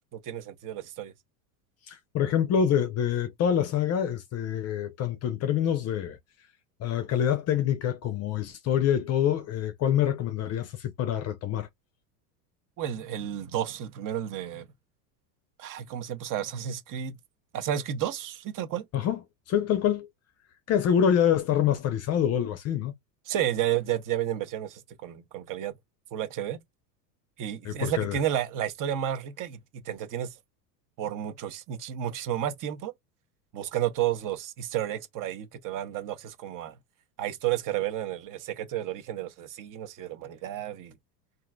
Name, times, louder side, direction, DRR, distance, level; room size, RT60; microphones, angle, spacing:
voice 1, 0.1-1.1 12.8-14.7 15.6-17.2 17.5-18.9 23.3-25.7 26.1-26.6 27.4-29.6 29.8-30.3 31.0-32.9 33.5-36.8 37.2-40.9, right 11 dB, 40° right, 0.9 m, -31 dB
voice 2, 1.9-6.2 6.8-11.7 18.9-19.2 19.5-20.1 20.7-22.9 27.6-28.2, left 9 dB, 30° left, 0.5 m, -26 dB
3.7 x 2.6 x 2.2 m
hypercardioid pair, 105°, 50 cm